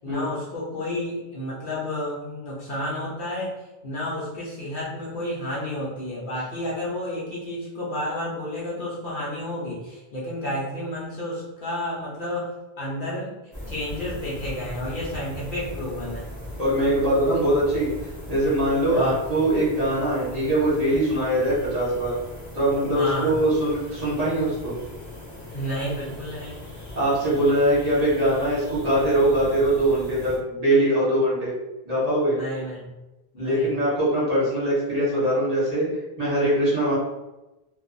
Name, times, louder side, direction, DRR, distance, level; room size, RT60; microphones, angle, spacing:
voice 1, 0.0-3.5 3.8-12.5 12.8-13.4 13.7-16.3 18.9-19.2 22.9-23.3 25.5-26.6 30.8-31.0 32.3-32.9 33.3-33.7, left 1 dB, 55° left, -6 dB, 0.8 m, -31 dB
sound 1, 13.5-30.4, left 1 dB, 20° left, 0.7 m, -39 dB
voice 2, 16.6-17.9 18.3-22.1 22.5-24.7 26.9-31.5 31.8-32.4 33.4-35.9 36.2-36.9, right 1 dB, 40° right, -8 dB, 1.0 m, -22 dB
2.4 x 2.3 x 2.5 m, 1.0 s
omnidirectional pair, 1.1 m